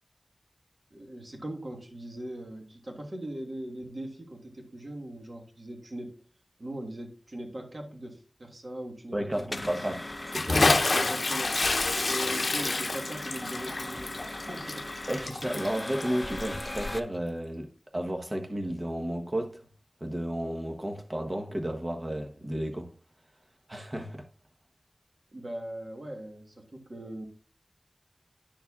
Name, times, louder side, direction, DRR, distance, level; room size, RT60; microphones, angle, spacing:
voice 1, 0.9-6.2 6.6-9.6 10.9-11.6 12.0-14.9 25.3-27.3, right 1 dB, 55° right, 1.5 m, -40 dB
voice 2, 9.1-10.0 10.3-10.7 15.1-19.7 20.0-22.9 23.7-24.3, right 1 dB, 35° right, 1.1 m, -32 dB
sound 1, 9.3-17.0, left 1 dB, 30° left, 0.6 m, -39 dB
Bathtub (filling or washing) / Splash splatter, 10.3-16.9, left 3 dB, 70° left, 0.6 m, -28 dB
10.0 x 7.0 x 2.4 m
wide cardioid pair, 65°, 0 cm